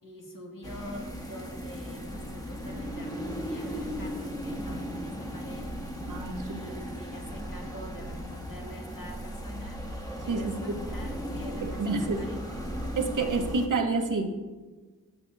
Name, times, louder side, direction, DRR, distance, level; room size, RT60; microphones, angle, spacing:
voice 1, 0.0-6.0 6.4-9.8 10.2-12.8 13.2-13.3, left 1 dB, 70° left, 0 dB, 1.9 m, -45 dB
sound 1, 0.6-13.7, equal, 10° left, 1.5 m, -37 dB
voice 2, 6.1-6.7 10.3-10.6 11.6-12.3 12.9-14.3, right 3 dB, 60° right, 4 dB, 1.1 m, -29 dB
17.0 x 7.5 x 2.7 m, 1.3 s
wide cardioid pair, 115°, 35 cm